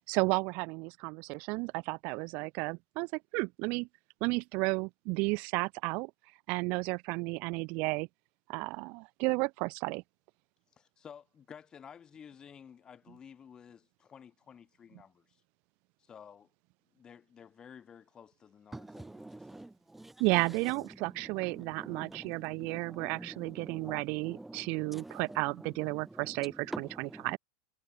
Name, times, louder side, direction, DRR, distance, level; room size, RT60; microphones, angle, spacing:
voice 1, 0.1-3.9 4.2-6.1 6.5-8.1 8.5-10.0 20.2-26.5 26.8-27.4, right 28 dB, 50° right, 0.6 m, -33 dB
voice 2, 10.7-15.4 16.0-16.5 16.9-19.7, left 7 dB, 25° left, 5.8 m, -53 dB
voice 3, 18.7-27.4, right 2 dB, 5° right, 0.7 m, -47 dB
hypercardioid pair, 115°, 3 cm